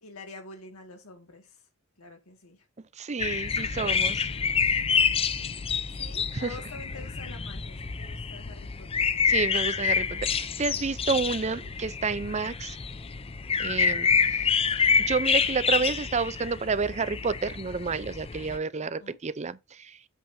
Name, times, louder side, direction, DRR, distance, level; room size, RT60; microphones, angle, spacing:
voice 1, 0.0-1.6 2.0-2.6 5.9-9.1 18.8-19.2, left 3 dB, 80° left, 2.0 m, -47 dB
voice 2, 3.0-4.3 6.3-6.6 9.3-12.8 13.6-14.5 15.1-20.0, right 4 dB, 30° right, 0.5 m, -30 dB
sound 1, 3.2-18.6, left 6 dB, 25° left, 0.5 m, -27 dB
sound 2, 3.7-15.2, left 2 dB, 85° right, 2.5 m, -51 dB
8.3 x 7.6 x 2.7 m
head